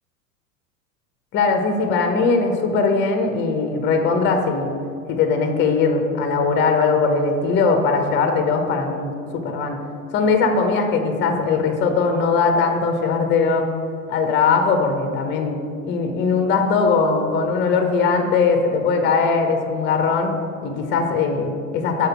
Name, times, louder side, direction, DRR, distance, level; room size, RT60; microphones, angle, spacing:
voice 1, 1.3-4.7 5.1-9.8 10.1-13.7 14.1-15.6 15.8-20.3 20.6-22.1, left 4 dB, 25° left, 5 dB, 0.8 m, -20 dB
6.6 x 4.6 x 5.9 m, 2.4 s
figure-of-eight pair, 80°, 42 cm